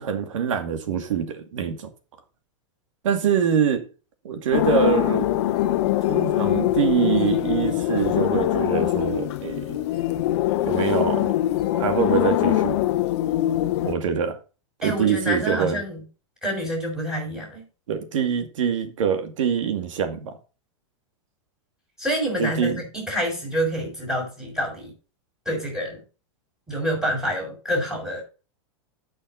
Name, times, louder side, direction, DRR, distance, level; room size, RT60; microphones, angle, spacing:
voice 1, 0.0-1.9 3.0-3.8 4.2-5.4 6.1-9.8 10.6-11.3 11.7-12.8 13.8-14.4 14.8-15.8 17.9-20.4 22.4-22.8, right 7 dB, 80° right, 2.4 m, -24 dB
sound 1, 4.5-14.0, left 14 dB, 60° left, 1.0 m, -23 dB
voice 2, 14.8-16.0 16.4-17.6 22.0-24.9 25.4-26.0 26.7-28.2, equal, 5° right, 6.5 m, -27 dB
12.0 x 6.5 x 4.1 m
supercardioid pair, 150°, 16 cm